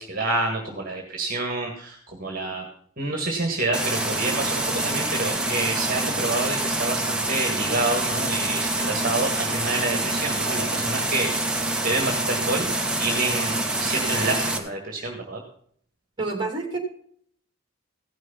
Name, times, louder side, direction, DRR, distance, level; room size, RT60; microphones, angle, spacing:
voice 1, 0.0-2.7 3.0-11.3 11.8-12.7 13.0-15.4, right 2 dB, 40° right, 2 dB, 1.7 m, -28 dB
sound 1, 3.7-14.6, right 2 dB, 5° right, 1.2 m, -26 dB
voice 2, 16.2-16.8, right 3 dB, 20° right, 3 dB, 2.6 m, -28 dB
16.0 x 6.3 x 5.7 m, 0.63 s
head